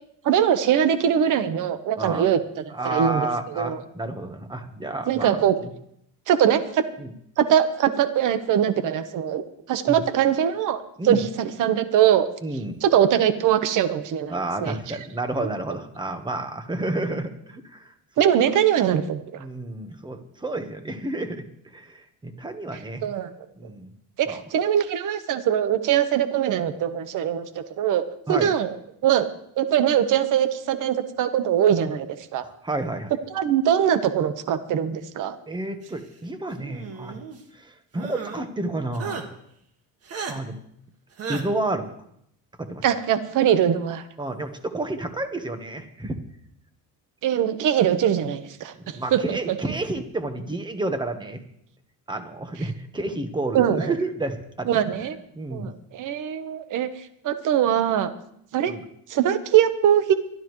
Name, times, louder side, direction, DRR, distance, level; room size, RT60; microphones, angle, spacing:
voice 1, 0.2-2.4 2.8-3.3 3.6-3.8 5.1-5.5 6.3-6.8 7.4-9.4 9.7-12.3 12.8-14.8 18.2-19.4 23.0-23.3 24.2-28.0 28.3-28.7 29.0-29.3 29.6-32.1 32.3-32.4 33.3-35.4 42.8-44.0 47.2-49.6 53.5-53.9 54.7-55.2 55.5-56.9 57.2-58.1 58.5-58.7 59.1-60.1, right 9 dB, 60° right, 10 dB, 1.2 m, -22 dB
voice 2, 2.7-5.7 7.0-7.1 9.9-10.0 11.0-11.2 12.4-12.8 14.3-17.9 19.4-21.4 21.7-23.1 23.6-23.9 24.3-24.4 28.3-28.5 32.6-33.1 35.5-37.2 37.5-39.3 40.3-40.6 41.3-41.9 42.6-42.8 44.2-46.2 48.8-51.4 52.1-54.8 55.3-55.7 58.7-58.8, right 2 dB, 15° right, 7 dB, 1.3 m, -30 dB
sound 1, 36.6-37.4 37.9-38.4 38.9-39.2 40.1-40.3 41.2-41.4, right 5 dB, 40° right, 1.8 m, -34 dB
22.5 x 13.0 x 3.2 m, 0.72 s
cardioid pair, 160°, 36 cm